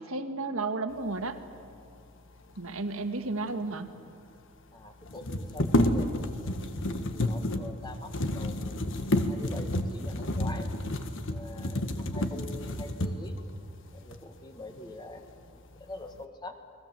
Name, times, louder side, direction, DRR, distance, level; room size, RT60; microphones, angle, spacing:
voice 1, 0.0-1.4 2.6-3.9, right 3 dB, 75° right, 8 dB, 1.7 m, -33 dB
sound 1, 3.6-3.7 3.9-4.0 5.1-13.4 14.1-14.2 14.7-15.3 15.7-16.2, left 1 dB, 60° left, 1.6 m, -30 dB
voice 2, 4.7-8.8 9.3-10.7 11.3-13.4 13.9-16.6, left 2 dB, 20° left, 5 dB, 2.1 m, -45 dB
30.0 x 22.0 x 7.7 m, 2.4 s
head